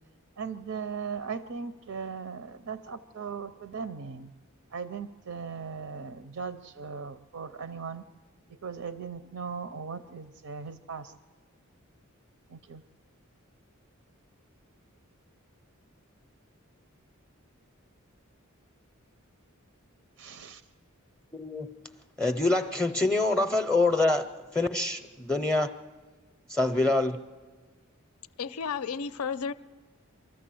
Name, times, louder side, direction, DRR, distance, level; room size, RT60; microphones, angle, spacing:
voice 1, 0.4-4.3 4.7-8.0 8.6-11.1 12.5-12.8 20.2-20.6, right 5 dB, 85° right, 11 dB, 0.6 m, -38 dB
voice 2, 21.3-21.7 22.2-25.7 26.5-27.2, left 2 dB, 5° left, 9 dB, 0.5 m, -26 dB
voice 3, 28.4-29.5, left 6 dB, 85° left, 16 dB, 0.5 m, -32 dB
24.5 x 14.0 x 7.7 m, 1.4 s
head